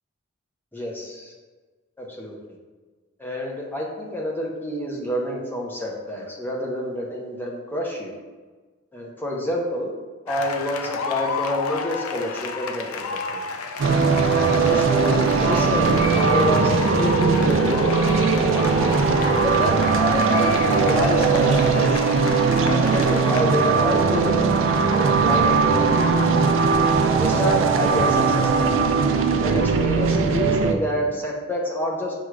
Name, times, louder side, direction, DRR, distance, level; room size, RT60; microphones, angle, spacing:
voice 1, 0.7-1.3 2.0-2.3 3.2-8.1 8.9-9.9 10.3-13.4 14.3-18.1 18.6-18.8 19.4-22.1 22.6-26.5 27.2-28.7 29.4-32.1, equal, 10° left, -2 dB, 0.6 m, -28 dB
sound 1, 10.3-23.4, left 5 dB, 85° left, 0.4 m, -31 dB
sound 2, 13.8-30.7, right 4 dB, 65° right, 0.4 m, -19 dB
5.9 x 2.3 x 3.1 m, 1.4 s
head